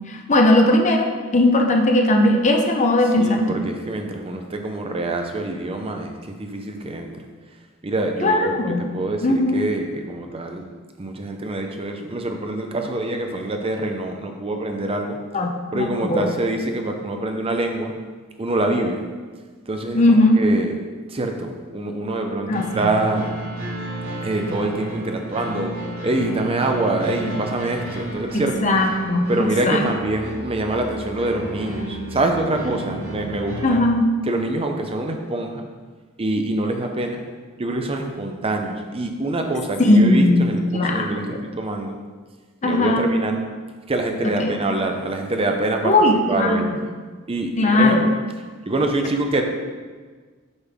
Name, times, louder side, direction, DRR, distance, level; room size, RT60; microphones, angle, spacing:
voice 1, 0.1-3.7 8.2-8.8 9.2-9.6 15.3-16.3 19.9-20.4 22.5-22.9 28.3-29.3 29.6-29.9 33.6-34.1 39.8-41.4 42.6-43.1 44.4-44.6 45.8-46.8 47.6-48.1, left 1 dB, 35° left, 3 dB, 0.7 m, -18 dB
voice 2, 3.2-7.1 7.8-8.6 8.9-10.6 11.0-15.2 15.7-17.9 18.4-19.0 19.7-20.8 21.1-23.4 24.2-25.7 26.0-28.5 29.3-33.8 34.3-35.7 36.2-37.2 37.6-41.9 42.6-43.4 43.9-45.9 46.3-46.9 47.3-48.1 48.6-49.4, right 2 dB, 30° right, 4 dB, 0.6 m, -25 dB
sound 1, 22.5-33.7, right 2 dB, 85° right, 2.1 m, -32 dB
8.0 x 5.6 x 3.5 m, 1.5 s
head